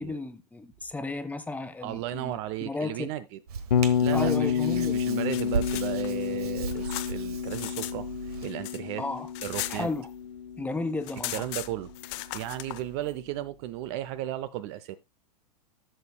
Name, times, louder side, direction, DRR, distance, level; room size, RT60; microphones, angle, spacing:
voice 1, 0.0-2.4 2.6-3.1 4.1-5.0 9.0-9.3 9.7-10.1 10.6-11.4, left 3 dB, 5° left, 1.0 m, -33 dB
voice 2, 1.8-3.4 4.0-9.0 9.4-9.9 11.3-11.9 12.3-15.0, right 13 dB, 40° right, 0.5 m, -35 dB
Hands, 3.5-8.5, right 6 dB, 65° right, 1.3 m, -37 dB
Bass guitar, 3.7-11.8, left 8 dB, 80° left, 0.7 m, -30 dB
sound 1, 5.0-8.0 8.3-10.4 10.7-10.8 11.0-12.8, left 17 dB, 45° left, 0.7 m, -38 dB
15.0 x 6.7 x 2.2 m
figure-of-eight pair, 100°, 21 cm